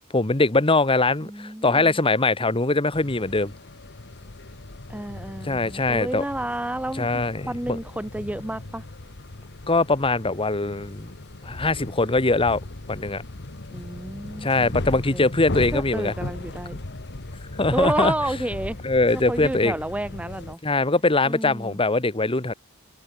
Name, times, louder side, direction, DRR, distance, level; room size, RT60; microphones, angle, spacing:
voice 1, 0.1-3.5 5.4-6.2 7.0-7.8 9.7-11.1 11.4-12.6 12.9-13.2 14.4-16.1 17.6-18.1 18.8-19.7 20.6-22.5, left 3 dB, 25° left, 1.4 m, -22 dB
voice 2, 1.2-2.0 4.9-7.1 7.5-8.8 13.7-15.3 15.7-16.8 17.7-18.8 19.1-20.6 21.2-21.8, right 1 dB, 5° right, 0.6 m, -30 dB
sound 1, 2.9-20.6, left 2 dB, 55° left, 1.5 m, -37 dB
open air
head